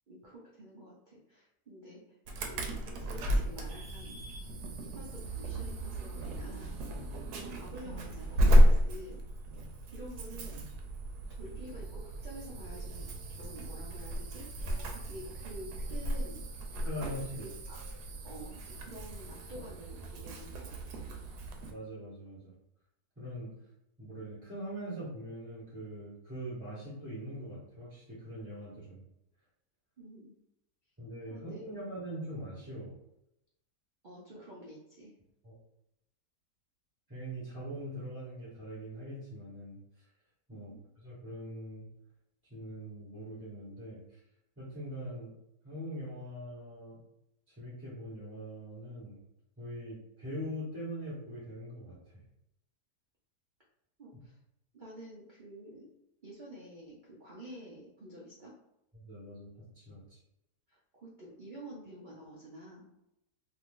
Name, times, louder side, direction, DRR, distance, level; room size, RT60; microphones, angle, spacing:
voice 1, 0.1-4.4 4.8-9.2 9.9-10.6 11.3-14.5 14.8-16.5 17.4-21.0 30.0-30.3 31.3-31.6 34.0-35.1 40.5-40.8 54.0-54.4 54.7-55.9 56.2-58.5 60.7-62.9, right 1 dB, 55° right, -5 dB, 0.5 m, -49 dB
Insect / Alarm, 2.3-21.7, equal, 85° right, 1.2 m, -32 dB
voice 2, 16.8-17.5 21.7-22.5 23.2-23.5 24.0-29.0 31.0-32.9 35.4-35.5 37.1-39.8 40.5-40.7 41.0-41.9 42.5-44.2 44.6-45.3 45.6-47.0 47.5-49.2 49.6-52.0 58.9-59.5 59.7-60.2, equal, 10° right, -8 dB, 0.8 m, -42 dB
2.8 x 2.5 x 3.6 m, 0.83 s
omnidirectional pair, 1.7 m